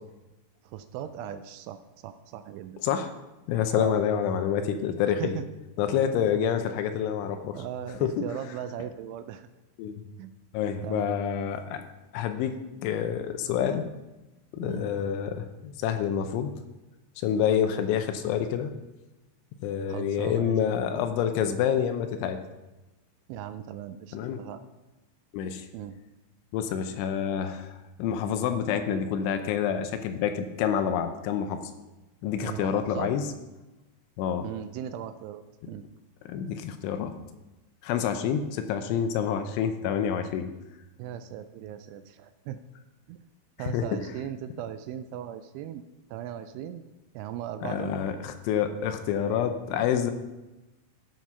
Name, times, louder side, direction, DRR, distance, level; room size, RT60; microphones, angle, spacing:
voice 1, 0.6-2.8 3.7-4.0 5.2-5.4 7.5-9.5 10.2-10.3 10.8-11.2 14.6-14.9 17.8-17.9 19.9-20.6 23.3-24.6 25.7-25.9 32.4-33.1 34.4-35.9 41.0-42.6 43.1-43.2 43.6-45.8 46.1-46.8 47.1-48.0, right 10 dB, 85° right, 10 dB, 2.9 m, -38 dB
voice 2, 3.5-5.4 5.8-7.6 8.0-8.1 9.8-10.1 10.5-11.8 12.1-12.6 12.8-13.9 14.5-16.5 17.2-18.7 19.6-22.4 24.1-24.4 25.3-25.7 26.5-31.6 32.2-33.3 34.2-34.5 36.3-37.1 37.8-40.5 43.6-43.9 47.6-50.1, left 8 dB, 80° left, 7 dB, 3.0 m, -27 dB
13.5 x 6.1 x 5.6 m, 1.0 s
omnidirectional pair, 5.7 m